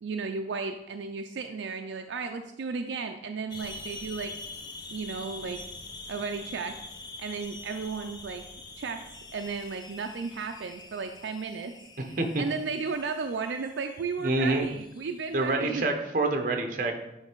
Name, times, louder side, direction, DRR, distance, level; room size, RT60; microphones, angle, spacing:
voice 1, 0.0-4.4 4.9-5.6 6.1-6.7 7.2-8.4 8.8-9.0 9.3-11.8 12.4-15.9, right 5 dB, 80° right, 6 dB, 0.4 m, -34 dB
sound 1, 3.5-15.5, left 2 dB, 25° left, 0.5 m, -45 dB
voice 2, 12.0-12.4 14.2-14.7 15.3-17.0, right 2 dB, 45° right, 5 dB, 0.9 m, -27 dB
8.9 x 3.3 x 4.5 m, 0.90 s
head